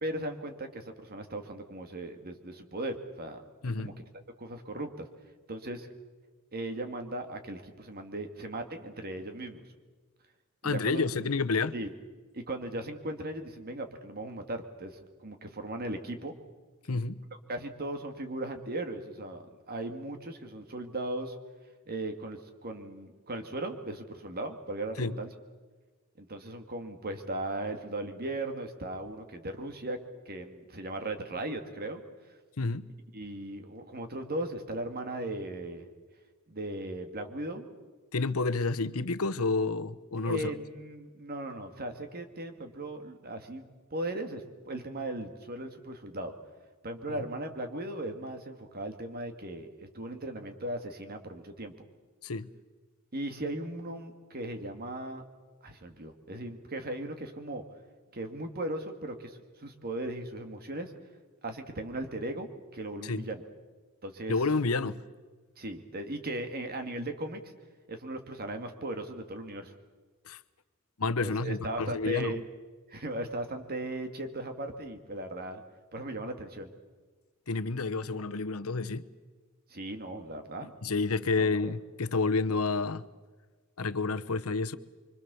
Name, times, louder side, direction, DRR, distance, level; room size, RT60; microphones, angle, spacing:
voice 1, 0.0-3.4 3.8-3.9 4.4-5.1 5.5-5.9 6.5-9.7 10.6-11.0 11.7-11.9 12.3-16.4 17.5-21.4 21.9-25.3 26.2-30.0 30.3-32.0 33.1-35.9 36.5-37.7 40.2-43.6 43.9-46.3 46.8-49.7 49.9-51.7 53.1-55.2 55.6-57.6 58.1-60.9 61.4-63.4 64.0-64.4 65.6-67.5 67.9-69.7 71.2-72.5 72.9-75.6 75.9-76.7 79.7-80.7 81.4-81.7, right 1 dB, 45° right, 6 dB, 2.2 m, -37 dB
voice 2, 3.6-3.9 10.6-11.7 16.9-17.2 25.0-25.2 32.6-32.9 38.1-40.5 47.1-47.2 52.2-52.5 63.0-63.3 64.3-65.0 70.3-70.4 71.0-72.3 77.5-79.0 80.8-83.1 83.8-84.8, left 3 dB, 90° left, 12 dB, 0.9 m, -29 dB
25.5 x 24.5 x 7.0 m, 1.4 s
head